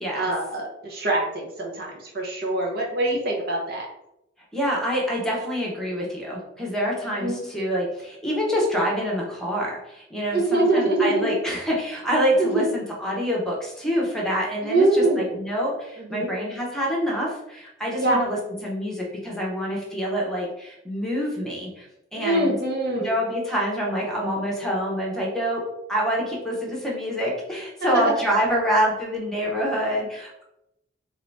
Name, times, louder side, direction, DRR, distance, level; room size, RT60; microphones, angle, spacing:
voice 1, 0.1-3.9 7.0-7.4 10.3-11.4 12.4-12.6 14.6-15.4 16.0-16.3 17.9-18.2 22.1-23.2 27.8-28.0, right 2 dB, 55° right, -1 dB, 1.0 m, -24 dB
voice 2, 4.5-15.0 15.4-21.9 22.1-22.5 23.0-25.6 25.9-30.4, equal, 5° left, -3 dB, 0.9 m, -26 dB
3.0 x 2.8 x 4.5 m, 0.85 s
head